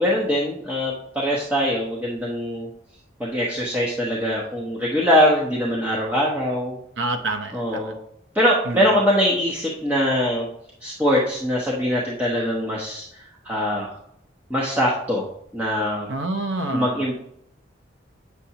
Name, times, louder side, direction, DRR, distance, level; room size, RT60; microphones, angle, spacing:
voice 1, 0.0-2.7 3.2-6.8 7.5-8.0 8.3-10.5 10.8-13.9 14.5-15.3 15.5-16.1 16.7-17.2, equal, 10° right, -5 dB, 1.0 m, -22 dB
voice 2, 7.0-7.9 8.7-9.0 16.1-17.1, right 2 dB, 85° right, 6 dB, 0.8 m, -28 dB
8.2 x 6.8 x 2.9 m, 0.73 s
head